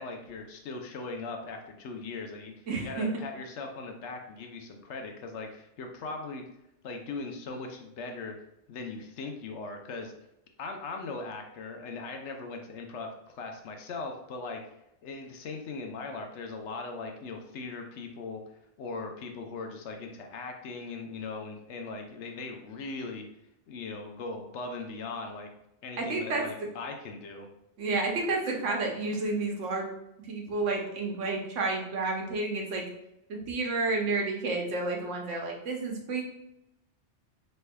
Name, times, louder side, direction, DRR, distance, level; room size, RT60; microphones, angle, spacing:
voice 1, 0.0-2.5 2.8-6.4 6.8-8.4 8.7-10.1 10.6-14.6 15.0-18.4 18.8-23.3 23.7-25.5 25.8-27.5, left 3 dB, 75° left, 4 dB, 0.9 m, -39 dB
voice 2, 2.7-3.2 26.0-26.4 27.8-29.9 30.3-32.8 33.3-36.2, right 3 dB, 90° right, 0 dB, 1.1 m, -30 dB
4.4 x 3.2 x 2.2 m, 0.85 s
omnidirectional pair, 1.2 m